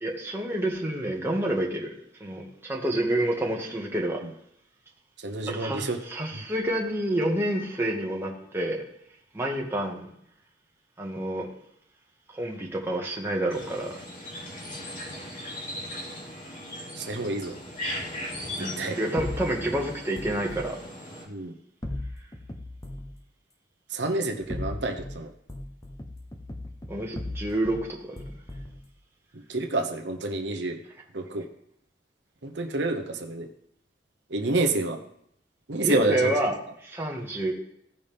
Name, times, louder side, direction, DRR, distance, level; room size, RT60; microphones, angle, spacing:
voice 1, 0.0-1.9 2.2-4.2 5.5-8.8 9.3-10.1 11.0-11.5 12.3-13.9 18.6-20.8 26.9-28.2 35.8-36.6 36.8-37.5, right 1 dB, 15° right, 1.7 m, -28 dB
voice 2, 5.2-6.0 17.0-17.5 18.6-19.0 21.3-21.5 23.9-25.3 29.3-30.8 31.1-31.5 32.4-33.5 34.3-35.0 35.7-36.3, right 2 dB, 80° right, 1.0 m, -28 dB
sound 1, 13.5-21.3, left 1 dB, 50° left, 2.6 m, -38 dB
sound 2, 19.2-20.7 21.8-23.1 24.3-25.2 25.5-27.8 28.2-28.8, left 1 dB, 20° left, 1.0 m, -37 dB
16.0 x 5.6 x 3.5 m
head